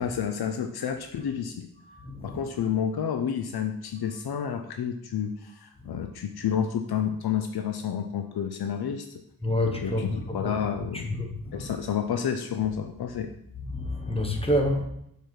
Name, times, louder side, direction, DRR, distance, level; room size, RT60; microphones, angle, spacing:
voice 1, 0.0-1.7 2.2-9.1 9.8-11.1 11.5-13.3, left 8 dB, 85° left, 6 dB, 0.6 m, -30 dB
voice 2, 1.9-2.4 5.9-6.0 9.4-10.5 10.9-11.7 13.7-14.8, left 1 dB, 15° left, 2 dB, 1.1 m, -28 dB
7.0 x 4.6 x 4.5 m, 0.76 s
wide cardioid pair, 115°, 37 cm